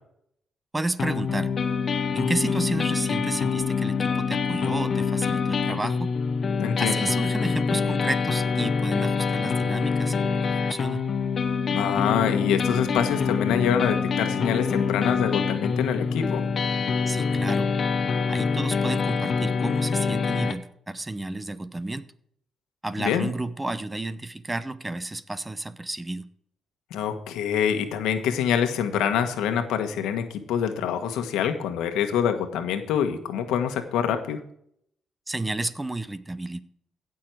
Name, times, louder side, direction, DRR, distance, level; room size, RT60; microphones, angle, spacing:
voice 1, 0.7-1.5 2.1-6.1 6.8-11.1 17.1-17.7 18.3-22.1 22.8-26.3 35.3-36.6, right 2 dB, 15° right, 14 dB, 0.7 m, -31 dB
sound 1, 1.0-20.5, left 5 dB, 45° left, 1.1 m, -25 dB
voice 2, 6.6-7.1 11.7-16.4 23.0-23.3 26.9-34.4, left 8 dB, 90° left, 7 dB, 1.3 m, -25 dB
16.5 x 6.3 x 4.7 m, 0.69 s
cardioid pair, 90°, 0 cm